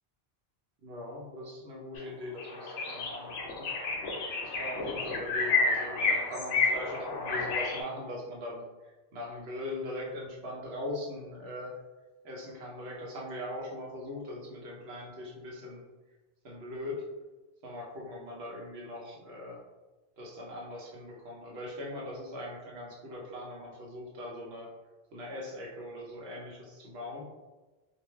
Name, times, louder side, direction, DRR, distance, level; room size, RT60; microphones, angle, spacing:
voice 1, 0.8-3.7 4.4-11.7 12.2-15.8 16.4-17.1 17.6-19.6 20.2-24.7 25.1-27.2, left 1 dB, 80° right, -3 dB, 1.0 m, -40 dB
sound 1, 2.0-2.1 2.4-7.8, left 4 dB, 85° left, 0.8 m, -30 dB
2.5 x 2.1 x 3.0 m, 1.2 s
omnidirectional pair, 1.0 m